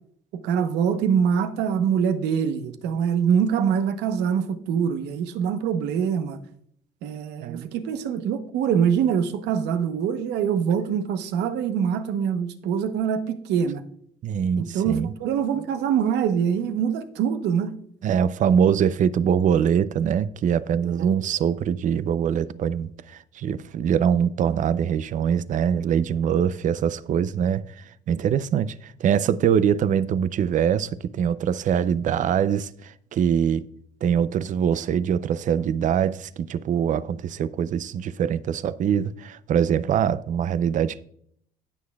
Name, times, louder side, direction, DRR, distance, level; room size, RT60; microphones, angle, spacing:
voice 1, 0.4-6.4 7.0-13.8 14.6-17.8 20.8-21.2, right 7 dB, 85° right, 0.9 m, -24 dB
voice 2, 7.4-7.7 14.2-15.1 18.0-33.6 34.0-41.0, right 8 dB, 50° right, 0.5 m, -23 dB
17.0 x 6.4 x 2.3 m
cardioid pair, 110°, 17 cm